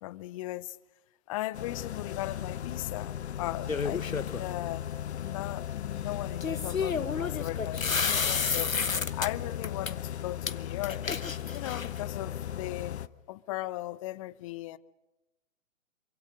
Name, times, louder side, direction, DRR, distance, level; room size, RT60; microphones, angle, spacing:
voice 1, 0.0-0.8 1.3-4.9 5.2-8.8 9.1-11.0 11.5-13.0 13.3-14.8, left 17 dB, 25° left, 0.7 m, -37 dB
sound 1, 1.5-13.1, left 10 dB, 55° left, 0.9 m, -37 dB
sound 2, 3.7-4.4 6.4-9.3 9.6-9.9 10.5-10.6 10.8-12.0, left 5 dB, 90° left, 1.1 m, -31 dB
27.0 x 25.0 x 5.0 m
figure-of-eight pair, 125°, 39 cm